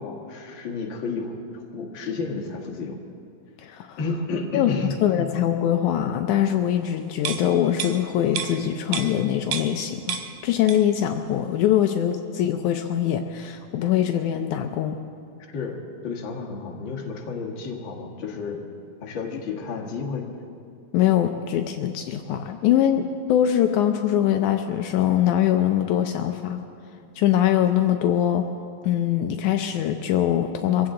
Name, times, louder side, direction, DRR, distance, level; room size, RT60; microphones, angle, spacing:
voice 1, 0.0-3.0 4.0-5.3 15.4-18.6 19.0-20.3, left 4 dB, 45° left, 0 dB, 2.0 m, -31 dB
voice 2, 3.6-4.0 4.5-4.8 5.0-15.0 20.9-26.6 27.2-28.5 28.8-30.9, left 11 dB, 80° left, 5 dB, 2.0 m, -22 dB
sound 1, 7.2-9.8 10.1-11.0 11.4-11.5, right 8 dB, 80° right, 2.3 m, -32 dB
24.0 x 15.5 x 3.8 m, 2.4 s
omnidirectional pair, 3.6 m